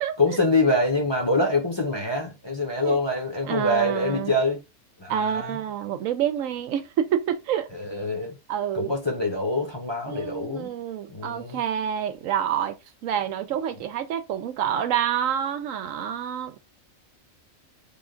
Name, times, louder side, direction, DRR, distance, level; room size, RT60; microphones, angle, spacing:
voice 1, 0.2-4.6 5.0-5.6 7.7-8.3 8.7-10.7 11.1-11.6, left 2 dB, 25° left, 0.8 m, -25 dB
voice 2, 3.4-4.3 5.1-7.7 8.5-8.9 10.1-12.8 13.0-16.6, right 9 dB, 80° right, 1.0 m, -27 dB
3.4 x 2.4 x 3.7 m
omnidirectional pair, 1.4 m